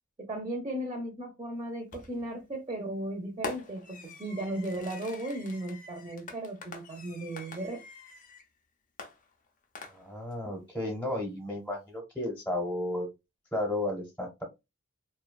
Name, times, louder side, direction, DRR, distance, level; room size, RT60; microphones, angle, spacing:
voice 1, 0.2-7.8, right 1 dB, 25° right, 2 dB, 0.5 m, -36 dB
Fireworks, 1.9-2.3 3.4-8.5 9.0-10.3, left 4 dB, 40° left, 0.5 m, -44 dB
voice 2, 9.9-13.1 13.5-14.4, left 1 dB, 5° left, -1 dB, 0.8 m, -33 dB
2.7 x 2.1 x 2.2 m, 0.23 s
head